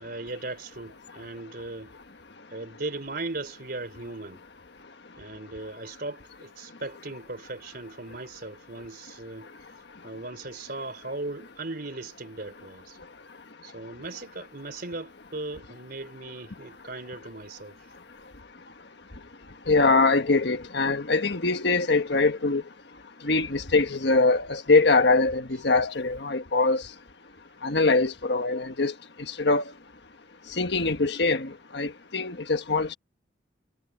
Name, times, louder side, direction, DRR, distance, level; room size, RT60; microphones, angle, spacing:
voice 1, 0.0-1.9 2.5-4.4 5.2-9.5 10.0-13.0 13.6-17.8, right 2 dB, 55° right, 3.5 m, -38 dB
voice 2, 19.7-22.6 23.2-26.8 27.6-28.9 29.4-29.6 30.6-33.0, left 3 dB, 65° left, 1.5 m, -23 dB
head